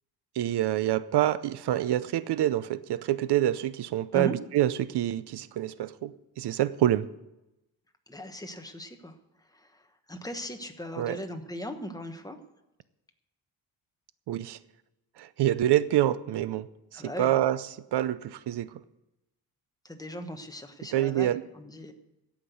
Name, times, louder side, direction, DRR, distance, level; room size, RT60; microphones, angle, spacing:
voice 1, 0.4-7.1 11.0-11.2 14.3-14.6 15.2-16.7 16.9-17.6 17.9-18.7 20.9-21.4, right 13 dB, 75° right, 16 dB, 0.6 m, -26 dB
voice 2, 8.1-12.4 16.9-17.4 19.8-21.9, equal, 10° left, 5 dB, 1.1 m, -39 dB
16.0 x 6.0 x 8.1 m, 0.93 s
cardioid pair, 130°, 41 cm